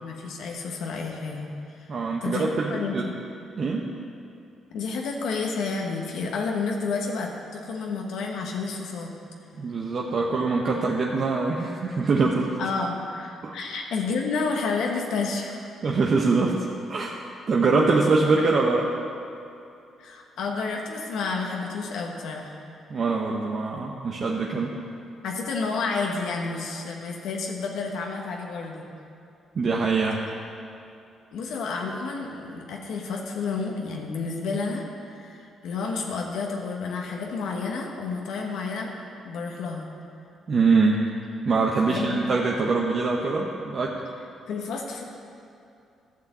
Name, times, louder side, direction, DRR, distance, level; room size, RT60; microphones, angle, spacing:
voice 1, 0.0-1.9 2.2-3.1 4.7-9.1 12.6-15.7 20.0-22.6 25.2-28.9 31.3-38.9 39.2-39.9 41.9-42.3 44.5-45.0, left 4 dB, 80° left, 0 dB, 1.3 m, -30 dB
voice 2, 1.9-3.1 3.6-3.9 9.6-12.5 13.4-13.6 15.8-18.9 22.9-24.7 29.5-30.2 40.5-41.0 41.4-44.0, right 4 dB, 50° right, -1 dB, 1.0 m, -23 dB
13.0 x 5.9 x 7.8 m, 2.6 s
cardioid pair, 90°, 0 cm